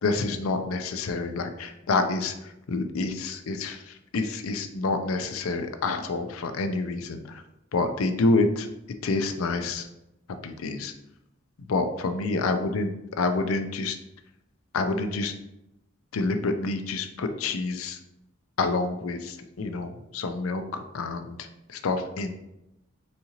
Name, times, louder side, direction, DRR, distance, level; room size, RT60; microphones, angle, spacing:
voice 1, 0.0-2.3 2.7-7.2 7.7-8.7 9.0-9.9 10.4-10.9 11.7-12.9 13.2-14.0 14.7-15.3 16.1-18.0 18.6-22.4, left 3 dB, 90° left, 8 dB, 0.5 m, -28 dB
4.3 x 3.7 x 2.8 m, 0.88 s
head